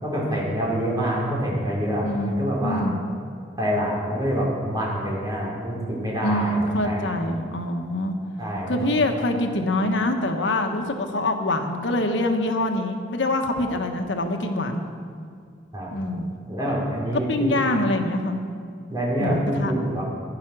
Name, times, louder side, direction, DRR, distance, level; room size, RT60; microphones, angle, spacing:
voice 1, 0.0-2.9 3.6-7.2 8.4-9.0 15.7-17.6 18.9-20.0, equal, 20° right, -5 dB, 4.2 m, -26 dB
voice 2, 2.0-2.3 2.6-3.0 6.2-8.1 8.7-14.8 15.9-16.3 17.1-18.4 19.2-19.7, left 1 dB, 85° left, 5 dB, 1.3 m, -25 dB
15.0 x 11.0 x 6.2 m, 2.3 s
head